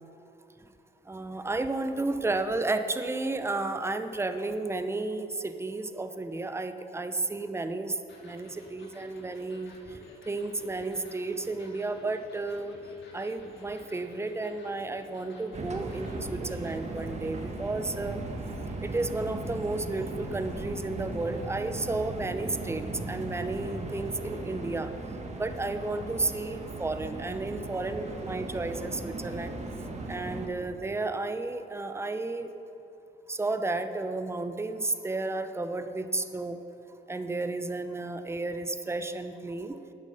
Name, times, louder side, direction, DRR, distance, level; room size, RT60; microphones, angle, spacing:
voice 1, 1.1-8.0 8.2-9.7 10.3-12.7 13.1-18.2 18.8-24.9 25.3-29.5 30.1-32.5 33.3-36.6 37.1-39.8, right 2 dB, 15° right, 9 dB, 0.7 m, -32 dB
Electric guitar, 8.1-16.8, left 2 dB, 60° left, 2.7 m, -52 dB
sound 1, 15.5-30.5, right 2 dB, 35° right, 1.6 m, -37 dB
13.0 x 9.2 x 5.3 m, 2.8 s
cardioid pair, 90°, 20 cm